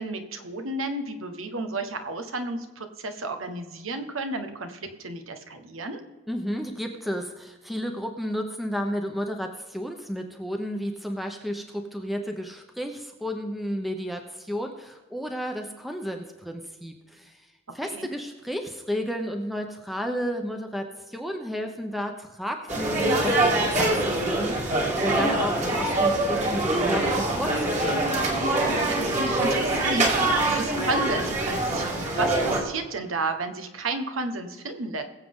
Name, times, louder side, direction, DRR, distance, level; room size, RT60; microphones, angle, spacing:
voice 1, 0.0-6.0 17.9-18.1 28.7-35.0, right 2 dB, 90° right, 7 dB, 1.4 m, -32 dB
voice 2, 6.3-17.4 17.7-28.1, equal, ahead, 4 dB, 0.9 m, -32 dB
sound 1, 22.7-32.6, right 2 dB, 35° right, 2.5 m, -24 dB
22.0 x 7.6 x 3.8 m, 1.3 s
head